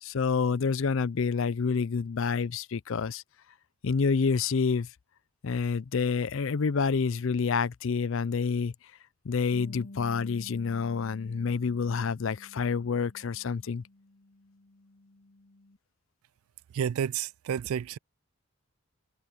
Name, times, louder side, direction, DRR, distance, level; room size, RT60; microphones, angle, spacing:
voice 1, 0.0-3.2 3.8-4.9 5.4-8.7 9.2-13.8, left 5 dB, 60° left, 0.5 m, -28 dB
Bass guitar, 9.5-15.8, left 2 dB, 80° left, 2.5 m, -51 dB
voice 2, 16.7-18.0, right 8 dB, 75° right, 0.3 m, -30 dB
head